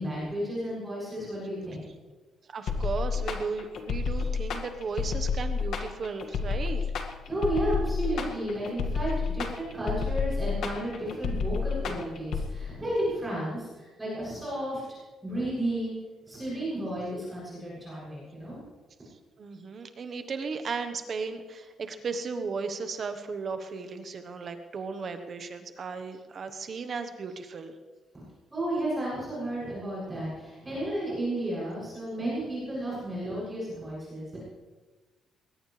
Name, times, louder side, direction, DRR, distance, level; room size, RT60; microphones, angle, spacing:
voice 1, 0.0-1.8 7.3-14.8 15.2-15.9 16.3-18.6 28.5-34.4, right 1 dB, 15° right, -8 dB, 7.3 m, -32 dB
voice 2, 2.5-6.9 19.4-27.8, right 4 dB, 40° right, 7 dB, 1.2 m, -35 dB
sound 1, 2.7-12.5, left 5 dB, 60° left, 1.9 m, -30 dB
21.5 x 19.0 x 3.3 m, 1.2 s
cardioid pair, 165°, 0 cm